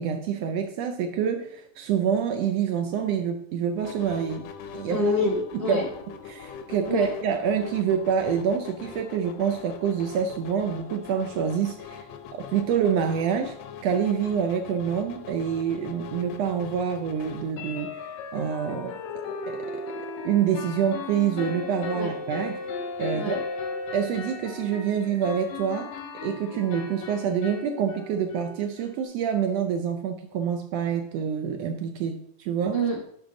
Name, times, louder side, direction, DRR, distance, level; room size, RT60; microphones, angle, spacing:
voice 1, 0.0-4.4 4.7-5.0 5.5-5.9 6.3-12.0 12.3-13.6 13.8-19.0 19.5-19.8 20.2-22.6 23.0-23.4 23.9-25.9 26.2-32.8, right 7 dB, 75° right, 6 dB, 1.5 m, -27 dB
sound 1, 3.8-17.5, left 7 dB, 75° left, 1.6 m, -42 dB
voice 2, 4.9-5.9 6.9-7.1 21.9-22.1 23.1-23.4 32.7-33.2, left 1 dB, 60° right, -2 dB, 0.6 m, -26 dB
sound 2, 13.6-13.7 14.1-14.2 14.5-14.6 17.6-29.0, left 4 dB, 90° left, 2.2 m, -36 dB
10.5 x 4.5 x 3.8 m, 0.72 s
omnidirectional pair, 3.3 m